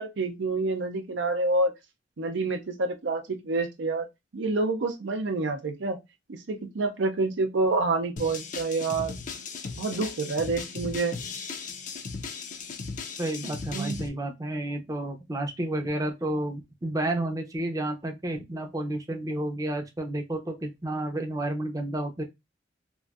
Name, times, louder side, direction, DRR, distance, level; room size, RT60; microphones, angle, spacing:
voice 1, 0.0-1.7 2.2-4.1 4.3-6.0 6.3-9.1 9.8-11.2 13.7-14.0, right 3 dB, 75° right, 0.5 m, -28 dB
sound 1, 8.2-14.1, left 4 dB, 45° left, 0.5 m, -37 dB
voice 2, 13.2-22.2, right 1 dB, 20° right, 0.5 m, -31 dB
3.0 x 2.5 x 2.4 m
head